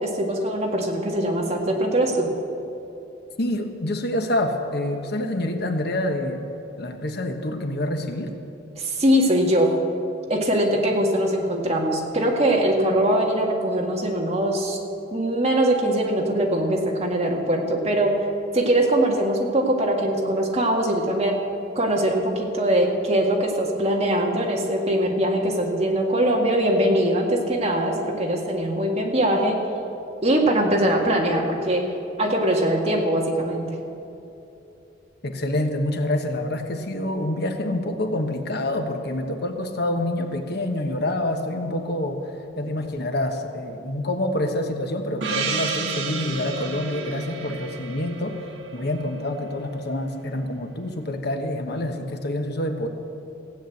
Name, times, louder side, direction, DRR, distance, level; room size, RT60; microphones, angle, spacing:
voice 1, 0.0-2.3 8.8-9.8 10.3-14.8 15.1-18.2 18.5-21.4 21.8-29.6 30.2-31.9 32.2-33.8, right 1 dB, 35° right, 0 dB, 1.9 m, -22 dB
voice 2, 3.4-6.4 6.8-8.3 35.2-42.2 42.6-48.4 48.7-52.9, left 1 dB, 55° left, 5 dB, 1.1 m, -27 dB
Gong, 45.2-50.0, right 5 dB, 70° right, 1.4 m, -32 dB
16.0 x 8.9 x 7.9 m, 2.8 s
head